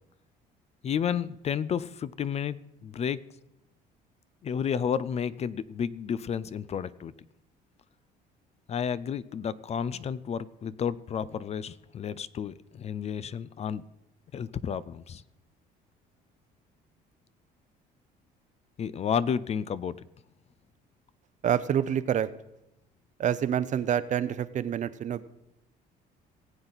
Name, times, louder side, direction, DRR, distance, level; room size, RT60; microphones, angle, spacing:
voice 1, 0.8-3.2 4.4-7.1 8.7-13.8 14.3-15.2 18.8-20.0, left 7 dB, 40° left, 18 dB, 0.4 m, -31 dB
voice 2, 21.4-22.3 23.2-25.2, right 9 dB, 45° right, 15 dB, 0.6 m, -27 dB
19.0 x 7.9 x 4.0 m, 0.88 s
cardioid pair, 110°, 17 cm